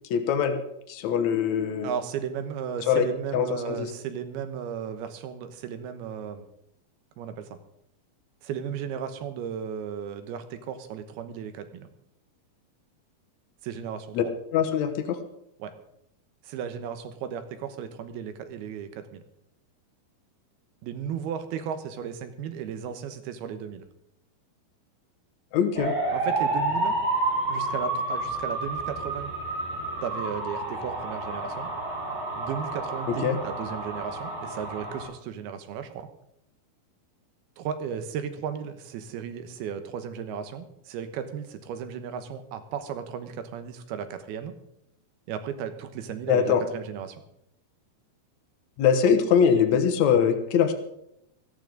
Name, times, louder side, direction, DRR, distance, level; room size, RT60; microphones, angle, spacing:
voice 1, 0.1-0.6 0.9-1.9 2.9-3.0 3.3-3.9 14.1-14.2 14.5-15.2 25.5-25.9 33.2-33.4 46.3-46.6 48.8-50.7, left 7 dB, 70° left, 7 dB, 1.7 m, -22 dB
voice 2, 1.8-6.5 7.2-7.6 8.4-11.9 13.6-14.2 15.6-15.7 16.4-19.2 20.8-23.9 26.1-27.0 27.5-29.3 30.0-31.7 32.4-36.1 37.6-44.5 45.3-47.2, right 8 dB, 75° right, 9 dB, 3.0 m, -35 dB
sound 1, 25.8-35.0, right 2 dB, 50° right, 8.7 m, -30 dB
17.5 x 14.5 x 3.9 m, 0.79 s
omnidirectional pair, 4.7 m